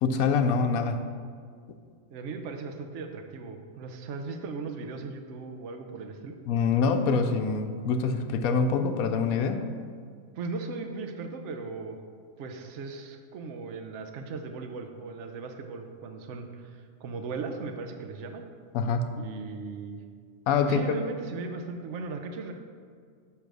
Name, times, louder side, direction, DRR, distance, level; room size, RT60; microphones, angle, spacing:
voice 1, 0.0-1.0 6.5-9.7 18.7-19.2 20.5-20.8, left 5 dB, 80° left, 7 dB, 1.0 m, -25 dB
voice 2, 2.1-6.3 10.4-12.0 12.4-18.4 19.2-20.0 20.6-22.5, right 4 dB, 60° right, 5 dB, 1.0 m, -37 dB
10.0 x 3.4 x 6.1 m, 2.1 s
omnidirectional pair, 1.5 m